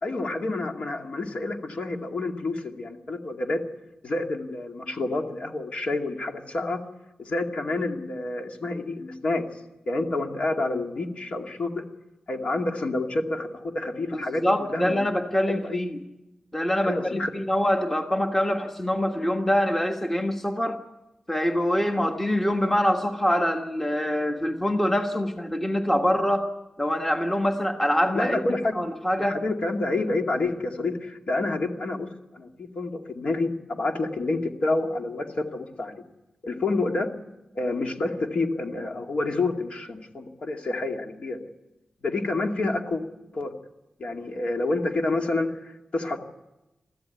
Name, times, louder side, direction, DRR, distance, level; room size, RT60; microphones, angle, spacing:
voice 1, 0.0-3.6 4.0-6.8 7.2-9.4 9.9-11.7 12.3-15.1 15.5-15.8 16.8-17.3 28.1-28.7 29.2-36.0 36.4-37.1 37.5-41.4 42.0-43.0 43.3-43.5 44.0-46.2, left 2 dB, 60° left, 3 dB, 2.3 m, -28 dB
voice 2, 14.1-16.0 16.5-20.8 21.3-26.5 26.8-28.4 28.7-29.4, equal, 10° left, 4 dB, 1.4 m, -24 dB
23.5 x 14.5 x 9.3 m, 0.97 s
wide cardioid pair, 160°, 2 cm